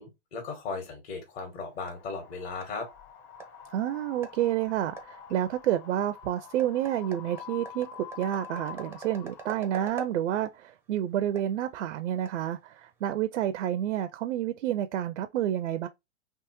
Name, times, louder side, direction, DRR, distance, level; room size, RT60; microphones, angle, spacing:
voice 1, 0.0-2.9, left 4 dB, 55° left, 1.7 m, -37 dB
sound 1, 1.2-13.0, right 6 dB, 5° right, 0.4 m, -48 dB
Wind, 1.8-9.9, left 8 dB, 40° left, 0.9 m, -47 dB
voice 2, 3.7-15.9, right 11 dB, 70° right, 0.5 m, -29 dB
3.5 x 2.9 x 2.9 m
hypercardioid pair, 110°, 38 cm